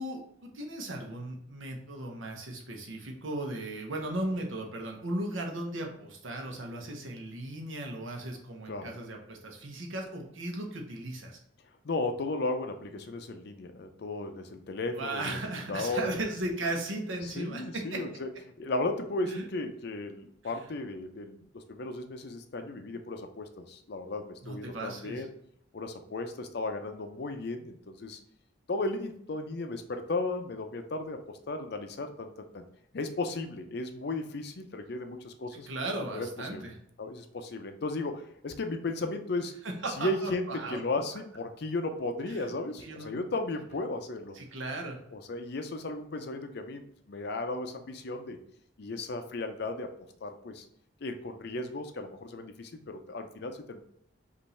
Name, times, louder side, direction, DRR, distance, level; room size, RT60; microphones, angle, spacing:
voice 1, 0.0-11.4 14.9-18.0 19.3-19.5 20.4-20.6 24.4-25.3 35.5-36.7 39.6-40.8 42.3-42.5 42.8-43.2 44.3-45.0, right 1 dB, 85° right, 1 dB, 1.0 m, -36 dB
voice 2, 11.8-15.4 15.7-16.2 17.2-18.3 18.6-25.3 25.7-28.2 28.7-32.6 32.9-35.7 36.1-36.7 37.0-39.6 40.0-40.4 40.7-44.4 45.1-48.4 48.8-49.9 50.2-50.6 51.0-53.8, left 2 dB, 55° left, 6 dB, 0.5 m, -35 dB
5.3 x 2.6 x 3.2 m, 0.71 s
head